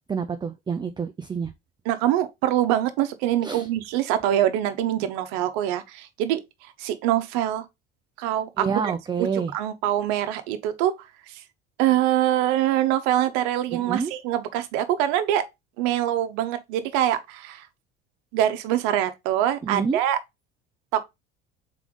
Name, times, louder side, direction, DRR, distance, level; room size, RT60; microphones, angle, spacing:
voice 1, 0.1-1.5 3.4-3.7 8.6-9.5 13.7-14.1 19.6-20.0, right 5 dB, 15° right, 0.4 m, -28 dB
voice 2, 1.9-6.4 6.8-7.6 8.2-8.7 9.2-9.3 9.5-10.9 11.3-11.4 11.8-15.4 15.8-17.6 18.3-20.2 20.9-21.0, right 12 dB, 70° right, 0.8 m, -24 dB
3.7 x 3.4 x 3.7 m
hypercardioid pair, 70°, 31 cm